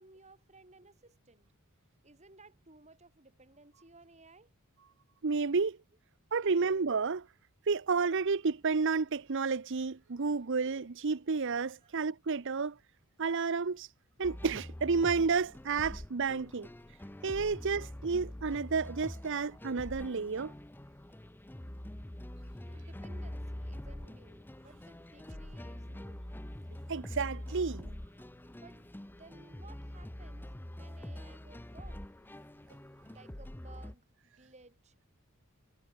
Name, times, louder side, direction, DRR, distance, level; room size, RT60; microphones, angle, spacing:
voice 1, 0.0-1.5 2.0-4.5 11.8-12.0 22.7-26.3 28.5-32.1 33.1-35.1, right 3 dB, 30° right, 5.7 m, -58 dB
voice 2, 5.2-5.8 6.3-7.3 7.7-12.8 13.2-13.9 14.2-16.7 17.2-20.5 26.9-28.0, right 4 dB, 55° right, 0.7 m, -31 dB
sound 1, 14.2-33.9, left 1 dB, 10° left, 0.6 m, -45 dB
head